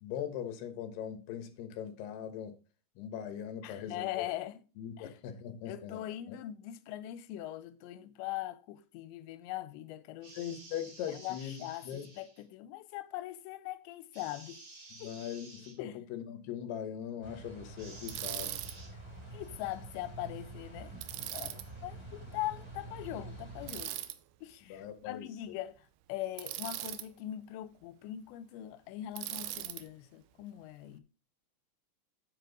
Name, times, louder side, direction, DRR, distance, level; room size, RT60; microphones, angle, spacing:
voice 1, 0.0-2.6 3.0-4.3 4.8-6.0 6.3-6.4 10.3-11.6 11.8-12.1 15.0-18.7 21.2-21.3 24.7-25.5, left 9 dB, 75° left, 3.1 m, -41 dB
voice 2, 3.6-4.6 5.0-5.2 5.7-10.4 11.1-14.6 15.0-15.2 15.8-16.0 19.3-20.9 21.3-24.0 24.4-31.0, left 14 dB, 90° left, 2.9 m, -41 dB
sound 1, 10.2-12.4 14.1-15.8 17.8-18.9, right 2 dB, 30° right, 2.3 m, -52 dB
sound 2, 17.2-23.8, right 2 dB, 10° right, 2.3 m, -47 dB
Bicycle, 18.1-18.7 21.0-21.6 23.7-24.2 26.4-27.1 29.2-29.8, right 15 dB, 80° right, 2.5 m, -39 dB
9.0 x 8.7 x 3.9 m
omnidirectional pair, 5.0 m